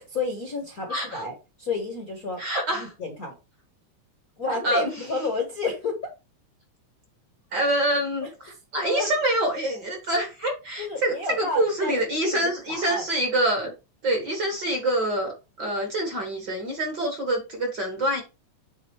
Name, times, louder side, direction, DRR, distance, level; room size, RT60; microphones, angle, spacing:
voice 1, 0.0-2.4 2.7-3.3 4.4-6.0 8.8-9.1 10.8-12.0 12.2-12.4 12.7-13.0, left 3 dB, 45° left, 1.2 m, -31 dB
voice 2, 0.9-1.3 2.4-2.9 4.6-5.1 7.5-8.3 8.7-13.7 14.0-15.3 15.6-18.2, right 1 dB, 45° right, 1.6 m, -26 dB
8.4 x 3.9 x 4.5 m
omnidirectional pair, 3.4 m